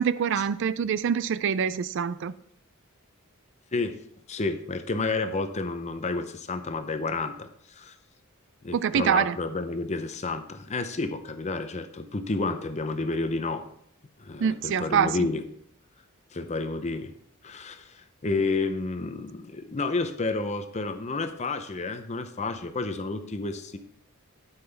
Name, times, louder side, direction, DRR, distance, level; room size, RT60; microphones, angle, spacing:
voice 1, 0.0-2.3 8.7-9.4 14.4-15.3, right 7 dB, 55° right, 16 dB, 0.3 m, -25 dB
voice 2, 4.3-7.9 8.6-13.7 14.2-15.4 16.3-17.1 17.4-23.8, left 3 dB, 30° left, 9 dB, 0.6 m, -30 dB
12.0 x 5.6 x 3.4 m, 0.67 s
head